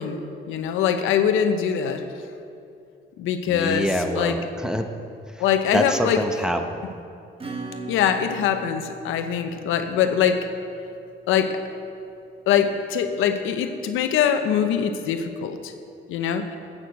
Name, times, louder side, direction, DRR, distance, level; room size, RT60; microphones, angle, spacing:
voice 1, 0.0-2.0 3.2-3.9 4.1-4.4 5.4-6.2 7.9-10.5 11.3-11.6 12.5-15.7 16.1-16.5, left 8 dB, 90° left, 8 dB, 0.7 m, -23 dB
voice 2, 3.5-4.9 5.7-6.8, equal, 5° right, 5 dB, 0.9 m, -25 dB
Acoustic guitar / Strum, 7.4-11.7, right 3 dB, 30° right, 1.3 m, -40 dB
9.2 x 8.4 x 6.5 m, 2.5 s
cardioid pair, 90°, 20 cm